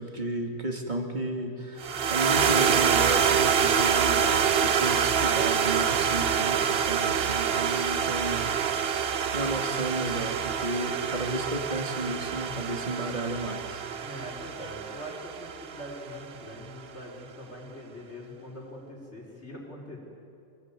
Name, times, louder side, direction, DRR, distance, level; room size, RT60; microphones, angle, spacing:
voice 1, 0.0-8.5 9.3-13.8, right 1 dB, 45° right, 3 dB, 2.8 m, -33 dB
sound 1, 1.8-16.2, right 7 dB, 65° right, 1.0 m, -26 dB
voice 2, 14.0-20.0, equal, 90° left, -2 dB, 5.1 m, -42 dB
27.5 x 18.5 x 9.2 m, 2.6 s
omnidirectional pair, 1.1 m